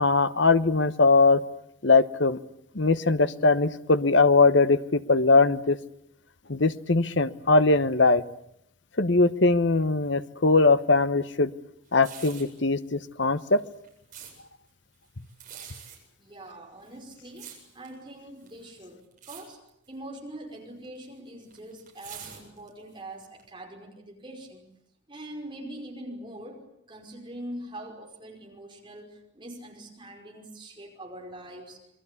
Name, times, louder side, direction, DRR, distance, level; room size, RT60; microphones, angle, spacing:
voice 1, 0.0-1.4 1.8-2.4 2.7-5.8 6.5-8.2 9.0-11.5 11.9-13.6, left 3 dB, 60° left, 13 dB, 1.1 m, -21 dB
sound 1, 11.9-12.6 13.4-14.3 15.3-16.0 16.8-17.9 18.4-18.8 19.1-19.4 19.7-19.9 20.8-22.9 23.4-23.5, right 9 dB, 40° right, 7.8 m, -45 dB
voice 2, 16.2-19.6 19.9-24.6 25.1-31.8, right 1 dB, 25° right, 1 dB, 5.3 m, -43 dB
27.5 x 21.5 x 8.5 m, 0.77 s
head